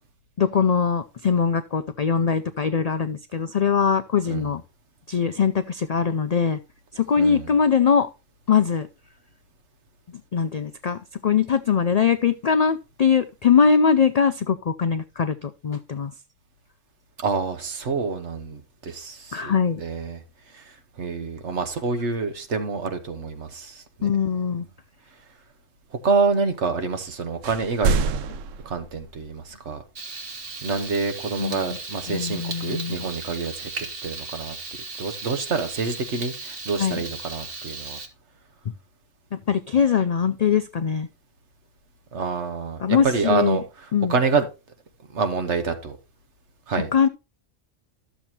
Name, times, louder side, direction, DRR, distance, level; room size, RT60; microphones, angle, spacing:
voice 1, 0.4-4.6 5.1-6.6 6.9-8.1 8.5-8.9 10.3-16.1 19.3-19.8 24.0-24.7 31.4-31.8 32.1-33.1 36.8-37.0 39.3-41.1 42.8-43.6 43.9-44.2 46.9-47.1, left 6 dB, 75° left, 0.3 m, -22 dB
voice 2, 7.2-7.5 17.2-20.2 20.5-24.1 26.0-28.2 28.6-29.8 30.6-33.7 34.0-34.5 35.0-38.0 42.1-43.6 44.1-44.5 45.1-46.0 46.7-47.1, right 4 dB, 65° right, 1.5 m, -27 dB
sound 1, 27.0-27.1 27.4-29.5, right 4 dB, 85° right, 1.0 m, -27 dB
Frying (food), 29.9-38.1, right 3 dB, 50° right, 1.5 m, -36 dB
12.5 x 7.0 x 2.8 m
omnidirectional pair, 1.3 m